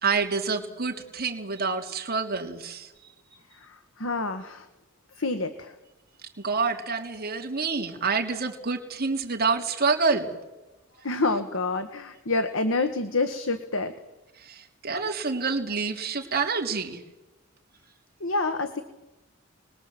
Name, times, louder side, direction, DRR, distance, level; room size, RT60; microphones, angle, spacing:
voice 1, 0.0-2.9 6.4-10.3 14.4-17.0, right 4 dB, 50° right, 3.2 m, -27 dB
voice 2, 3.5-4.7 5.2-5.7 11.0-14.0 18.2-18.8, left 3 dB, 70° left, 1.5 m, -28 dB
29.5 x 21.0 x 7.9 m
head